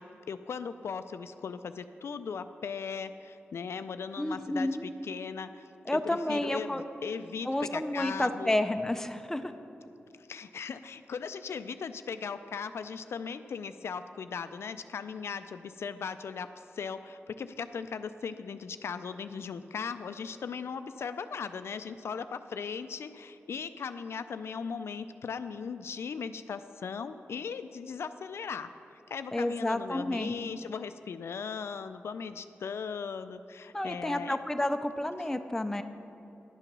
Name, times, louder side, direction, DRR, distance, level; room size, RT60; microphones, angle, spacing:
voice 1, 0.0-8.6 10.2-28.7 29.1-34.4, left 6 dB, 75° left, 11 dB, 0.3 m, -38 dB
voice 2, 4.2-4.9 5.9-6.8 7.4-9.5 29.3-30.4 33.7-35.8, left 1 dB, 10° left, 8 dB, 0.5 m, -30 dB
11.0 x 6.8 x 6.0 m, 2.9 s
wide cardioid pair, 95°, 4 cm